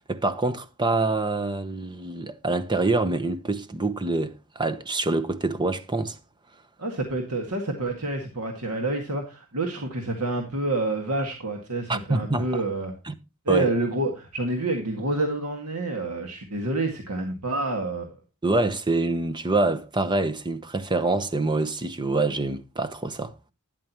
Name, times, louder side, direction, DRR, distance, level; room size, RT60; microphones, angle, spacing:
voice 1, 0.0-6.2 11.9-12.5 13.1-13.2 13.5-13.7 18.4-23.3, right 2 dB, 20° right, 0.9 m, -26 dB
voice 2, 6.8-12.9 13.5-18.1, right 2 dB, 85° right, 2.0 m, -28 dB
12.5 x 10.0 x 3.0 m
head